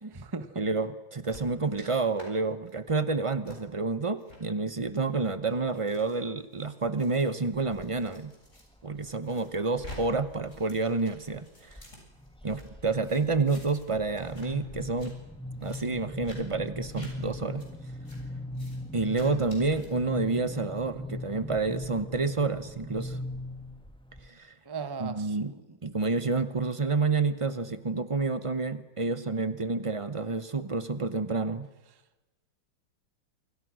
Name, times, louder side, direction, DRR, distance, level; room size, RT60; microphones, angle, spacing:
voice 1, 0.0-0.7 24.6-25.8, right 4 dB, 15° right, 10 dB, 1.1 m, -38 dB
voice 2, 0.6-8.3 8.8-11.8 12.4-15.1 15.6-17.6 18.9-23.2 24.2-24.5 25.0-25.5 25.8-31.7, right 3 dB, 50° right, 12 dB, 0.3 m, -29 dB
sound 1, 1.3-1.9 2.1-2.3 2.7-2.9 3.4-3.6 4.2-4.4 5.1-8.6 9.0-10.0 10.3-12.6 13.0-13.9 14.1-14.5 14.8-15.1 15.6-15.8 16.2-16.4 16.9-17.1 17.6-17.7 18.0-18.2 18.5-18.8 19.1-19.9, left 1 dB, 35° left, 8.1 m, -49 dB
sound 2, 7.5-8.1 8.6-9.1 9.8-10.6 11.0-11.4 11.7-24.3, left 1 dB, 5° left, 1.5 m, -40 dB
28.5 x 25.5 x 6.3 m, 1.1 s
omnidirectional pair, 2.2 m